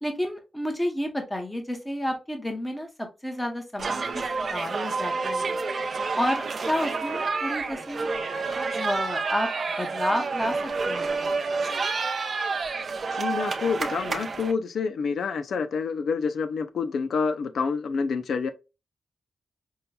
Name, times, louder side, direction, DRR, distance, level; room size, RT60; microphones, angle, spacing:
voice 1, 0.0-5.6 6.2-8.1 8.8-11.4, equal, 10° left, 0.9 m, -31 dB
sound 1, 3.8-14.5, right 4 dB, 55° right, 0.6 m, -29 dB
voice 2, 13.1-18.5, left 5 dB, 80° left, 0.4 m, -28 dB
5.5 x 2.2 x 2.2 m
cardioid pair, 90°, 0 cm